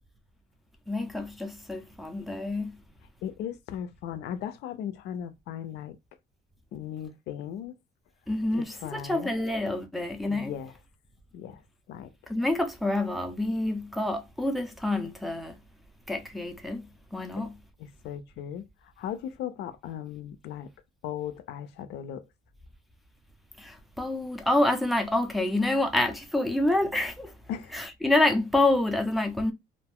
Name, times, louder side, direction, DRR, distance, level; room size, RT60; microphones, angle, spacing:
voice 1, 0.9-2.8 8.3-10.5 12.3-15.6 16.1-17.6 23.6-27.3 27.7-29.5, left 2 dB, ahead, 0.6 m, -27 dB
voice 2, 3.2-6.0 6.7-7.8 8.6-9.3 10.2-10.7 11.3-11.6 11.9-12.1 17.4-17.5 18.0-20.7 21.0-22.3 27.5-27.8, left 9 dB, 75° left, 0.5 m, -37 dB
2.5 x 2.2 x 3.5 m
cardioid pair, 110°, 17 cm